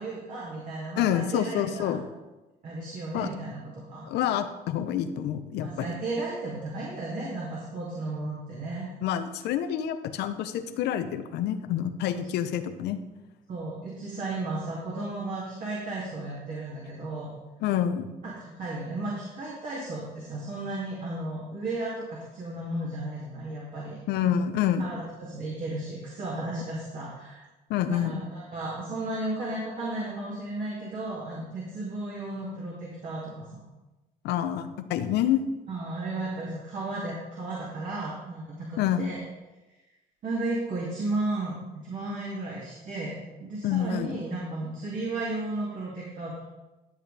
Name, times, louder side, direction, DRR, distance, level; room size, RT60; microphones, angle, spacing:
voice 1, 0.0-2.0 2.6-4.1 5.6-8.9 12.1-12.2 13.5-17.3 18.2-24.0 24.8-27.4 27.9-33.6 35.7-39.2 40.2-46.4, right 2 dB, 50° right, -6 dB, 2.7 m, -34 dB
voice 2, 1.0-2.1 3.1-3.3 4.0-5.9 9.0-13.0 17.6-18.2 24.1-24.9 27.7-28.2 34.2-35.4 38.8-39.1 43.6-44.2, left 10 dB, 80° left, 9 dB, 0.9 m, -27 dB
12.5 x 7.7 x 3.5 m, 1.1 s
cardioid pair, 110°, 17 cm